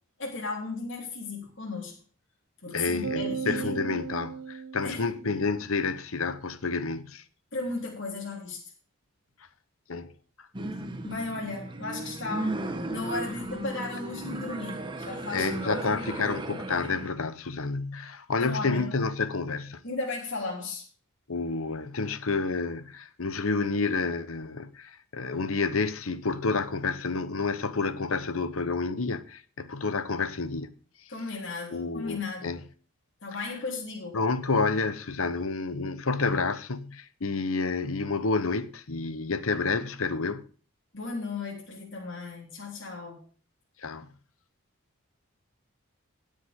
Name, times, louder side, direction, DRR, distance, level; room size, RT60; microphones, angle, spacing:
voice 1, 0.2-1.9 2.6-4.0 4.8-5.1 7.5-8.6 11.0-12.5 12.9-15.8 18.4-18.9 19.8-20.8 31.1-32.6 33.2-34.2 40.9-43.2, left 3 dB, 55° left, 3.5 m, -35 dB
voice 2, 2.7-7.2 9.9-10.1 15.3-19.8 21.3-30.7 31.7-32.6 34.1-40.4 43.8-44.1, left 4 dB, 75° left, 1.0 m, -29 dB
sound 1, 3.0-5.6, right 6 dB, 75° right, 0.8 m, -36 dB
sound 2, 10.5-17.1, right 2 dB, 20° right, 1.2 m, -35 dB
17.5 x 6.9 x 3.6 m
head